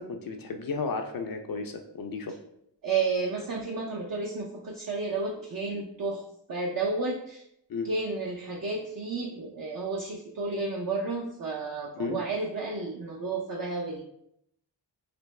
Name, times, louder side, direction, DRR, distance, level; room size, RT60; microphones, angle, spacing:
voice 1, 0.0-2.4 7.7-7.9 12.0-12.2, left 4 dB, 50° left, 5 dB, 0.4 m, -33 dB
voice 2, 2.8-6.2 6.5-7.4 7.8-14.0, right 3 dB, 50° right, -1 dB, 0.6 m, -31 dB
3.3 x 2.8 x 3.1 m, 0.74 s
wide cardioid pair, 75°, 46 cm